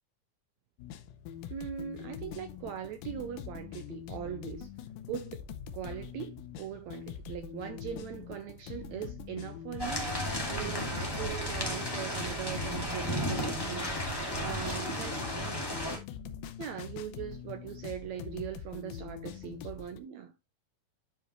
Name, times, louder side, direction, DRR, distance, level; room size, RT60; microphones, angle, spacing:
sound 1, 0.8-20.0, left 8 dB, 75° left, 2.3 m, -44 dB
voice 1, 1.5-4.7 5.1-5.5 5.7-15.2 15.8-16.0 16.6-20.3, right 9 dB, 75° right, 1.8 m, -40 dB
sound 2, 9.8-16.0, equal, 10° left, 1.1 m, -34 dB
10.0 x 4.8 x 3.0 m
omnidirectional pair, 3.9 m